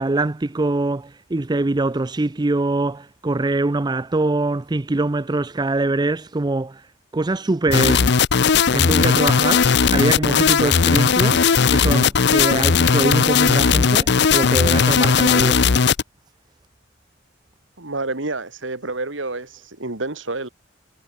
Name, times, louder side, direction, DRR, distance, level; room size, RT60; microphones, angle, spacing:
voice 1, 0.0-6.9 7.1-8.1 8.7-11.4 11.7-15.7, right 2 dB, 20° right, 0.5 m, -23 dB
sound 1, 7.7-16.0, left 6 dB, 60° left, 0.7 m, -17 dB
voice 2, 17.8-20.5, right 2 dB, 75° right, 2.7 m, -28 dB
head